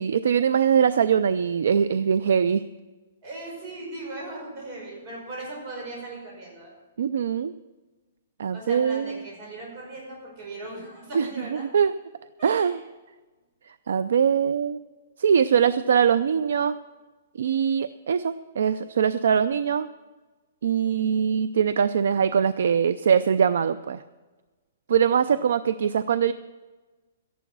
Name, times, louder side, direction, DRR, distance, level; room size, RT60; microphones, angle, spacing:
voice 1, 0.0-2.6 7.0-7.5 8.4-9.2 11.1-11.9 12.4-12.8 13.9-14.8 15.2-16.8 17.4-19.9 20.6-24.0 24.9-26.3, right 7 dB, 70° right, 14 dB, 0.4 m, -22 dB
voice 2, 3.2-6.7 8.5-11.7 12.4-12.8 25.3-25.4, right 2 dB, 30° right, -2 dB, 5.4 m, -38 dB
13.5 x 11.0 x 6.1 m, 1.3 s
hypercardioid pair, 175°, 0 cm